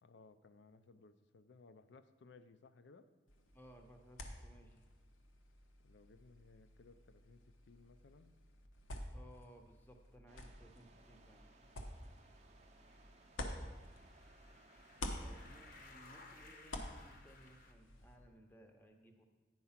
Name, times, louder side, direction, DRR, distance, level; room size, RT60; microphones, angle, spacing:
voice 1, 0.0-3.1 5.8-8.3 15.0-15.4, left 4 dB, 60° left, 11 dB, 0.4 m, -62 dB
sound 1, 3.3-14.5 14.8-18.2, left 1 dB, 85° left, 0.9 m, -50 dB
voice 2, 3.5-4.9 9.1-11.5 15.2-19.2, equal, 10° left, 4 dB, 0.7 m, -61 dB
sound 2, 10.3-15.9, right 3 dB, 35° right, 0.5 m, -65 dB
sound 3, 11.0-17.7, left 3 dB, 45° left, 0.8 m, -62 dB
9.5 x 4.7 x 5.7 m, 1.3 s
head